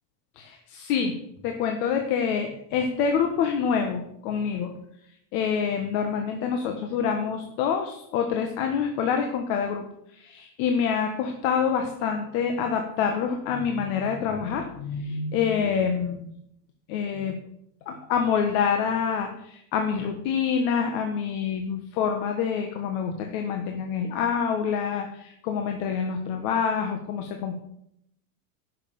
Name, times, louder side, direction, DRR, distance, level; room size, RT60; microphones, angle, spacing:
voice 1, 0.4-1.1 1.4-4.7 5.3-16.3 16.9-17.3 17.8-27.6, left 6 dB, 65° left, 4 dB, 1.5 m, -26 dB
10.5 x 6.7 x 6.9 m, 0.74 s
supercardioid pair, 145°, 45 cm